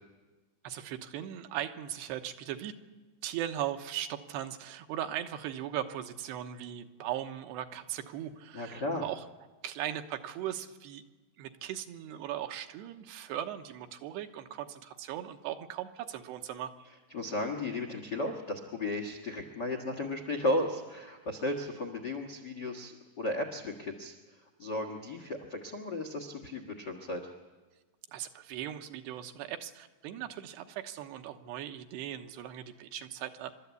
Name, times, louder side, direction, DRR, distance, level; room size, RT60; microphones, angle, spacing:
voice 1, 0.6-2.7 3.2-9.2 9.6-11.0 11.4-16.7 28.1-33.5, right 11 dB, 80° right, 6 dB, 3.1 m, -38 dB
voice 2, 8.5-9.1 17.1-24.1 24.6-27.3, left 1 dB, 75° left, 4 dB, 0.9 m, -34 dB
29.0 x 13.0 x 8.3 m, 1.3 s
omnidirectional pair, 4.8 m